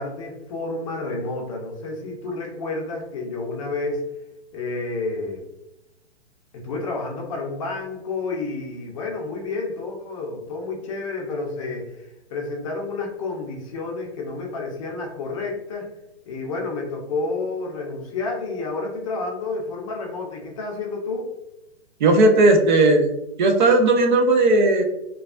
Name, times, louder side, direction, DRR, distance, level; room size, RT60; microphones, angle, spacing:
voice 1, 0.0-4.0 4.5-5.4 6.5-15.9 16.3-21.3, left 3 dB, 30° left, 0 dB, 0.5 m, -30 dB
voice 2, 22.0-23.1 23.4-24.8, right 2 dB, 45° right, 5 dB, 0.4 m, -16 dB
3.1 x 2.2 x 2.4 m, 0.91 s
hypercardioid pair, 145°, 34 cm